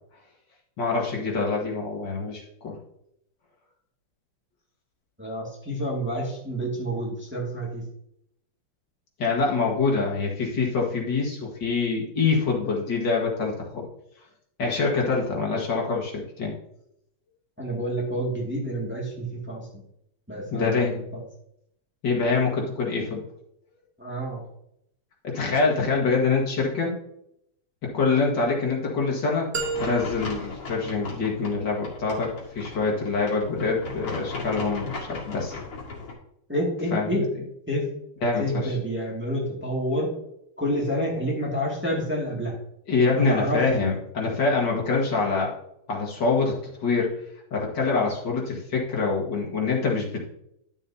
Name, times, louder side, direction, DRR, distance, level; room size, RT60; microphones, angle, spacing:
voice 1, 0.8-2.7 9.2-13.9 14.6-16.5 20.5-21.0 22.0-23.2 25.2-26.9 27.8-29.5 29.7-35.6 36.9-37.2 38.2-38.8 42.9-45.5 45.9-46.6 46.8-47.2 47.5-50.4, left 4 dB, 60° left, -3 dB, 2.4 m, -25 dB
voice 2, 5.2-7.8 17.6-19.6 20.3-21.0 24.0-24.4 36.5-37.3 37.7-37.9 38.4-40.1 40.6-42.5 43.1-43.6, equal, 5° right, -4 dB, 2.0 m, -28 dB
sound 1, 29.5-31.6, right 4 dB, 55° right, 0.7 m, -34 dB
sound 2, 29.6-36.1, left 3 dB, 80° left, 3.1 m, -37 dB
11.5 x 7.5 x 2.8 m, 0.76 s
omnidirectional pair, 2.3 m